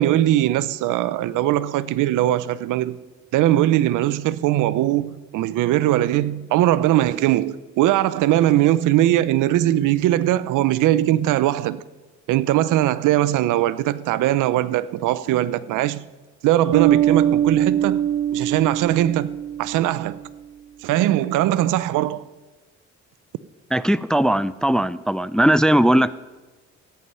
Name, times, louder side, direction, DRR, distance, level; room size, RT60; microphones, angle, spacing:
voice 1, 0.0-3.0 3.3-11.8 12.3-16.0 16.4-19.3 19.6-20.2 20.8-22.2, right 13 dB, 85° right, 0.6 m, -20 dB
Bass guitar, 16.7-20.2, right 11 dB, 65° right, 1.1 m, -22 dB
voice 2, 23.7-26.1, right 1 dB, ahead, 0.3 m, -18 dB
14.0 x 9.4 x 5.5 m
cardioid pair, 90°, 30 cm